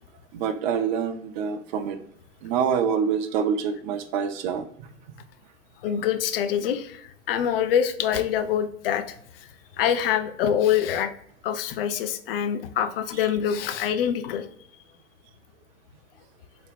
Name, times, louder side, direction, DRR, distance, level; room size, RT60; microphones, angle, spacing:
voice 1, 0.3-2.0 2.4-4.7, right 7 dB, 40° right, 7 dB, 0.5 m, -26 dB
voice 2, 5.8-9.1 9.4-9.5 9.8-11.1 11.4-14.5, left 9 dB, 50° left, 9 dB, 0.5 m, -25 dB
3.8 x 2.1 x 3.4 m, 0.66 s
figure-of-eight pair, 90°, 37 cm